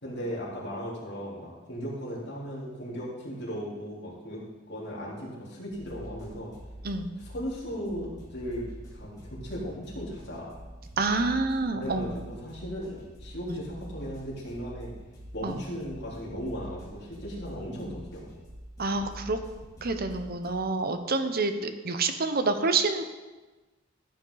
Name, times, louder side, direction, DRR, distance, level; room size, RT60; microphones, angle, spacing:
voice 1, 0.0-4.4 4.7-6.5 7.2-8.6 8.9-10.5 11.7-14.9 15.3-18.3, equal, 60° left, -6 dB, 3.7 m, -37 dB
sound 1, 5.7-20.5, right 1 dB, 20° left, 2.9 m, -45 dB
voice 2, 11.0-12.1 15.4-15.6 18.8-19.4 19.8-23.0, right 3 dB, 50° right, 9 dB, 0.9 m, -27 dB
14.5 x 8.2 x 4.0 m, 1.2 s
head